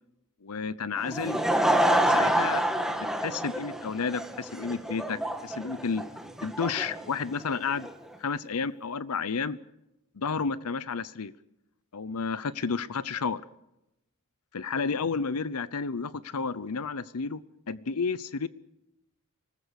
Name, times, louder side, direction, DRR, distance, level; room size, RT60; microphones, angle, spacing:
voice 1, 0.4-1.4 2.1-6.0 6.4-7.9 8.2-9.6 10.2-11.3 11.9-13.4 14.5-17.4 17.7-18.5, left 5 dB, 85° left, 17 dB, 0.7 m, -31 dB
Laughter / Crowd, 1.0-7.9, right 1 dB, ahead, 1.6 m, -27 dB
25.5 x 19.5 x 6.5 m, 0.88 s
head